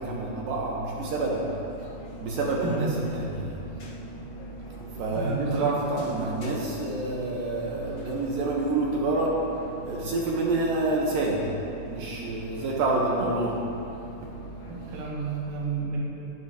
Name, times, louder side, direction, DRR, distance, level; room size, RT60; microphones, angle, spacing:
voice 1, 0.0-1.4 2.2-3.5 4.8-9.3 9.8-11.4 11.9-13.6, right 2 dB, 70° right, -3 dB, 2.2 m, -28 dB
sound 1, 1.0-15.0, equal, 75° left, 1.4 m, -43 dB
voice 2, 5.1-5.7 14.7-16.0, right 4 dB, 85° right, -4 dB, 4.7 m, -31 dB
21.5 x 12.5 x 3.0 m, 2.8 s
omnidirectional pair, 5.7 m